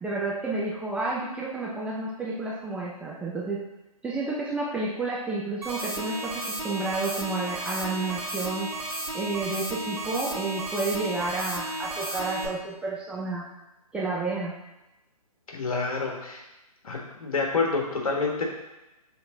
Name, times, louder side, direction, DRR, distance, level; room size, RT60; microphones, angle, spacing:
voice 1, 0.0-3.6 4.0-8.7 9.1-13.4 13.9-14.6, right 3 dB, 5° right, -5 dB, 0.4 m, -30 dB
sound 1, 5.6-12.5, right 1 dB, 80° right, 1.9 m, -33 dB
voice 2, 15.5-16.4 16.8-18.4, left 4 dB, 65° left, 0 dB, 1.6 m, -28 dB
6.9 x 3.5 x 3.8 m, 0.98 s
figure-of-eight pair, 130°, 20 cm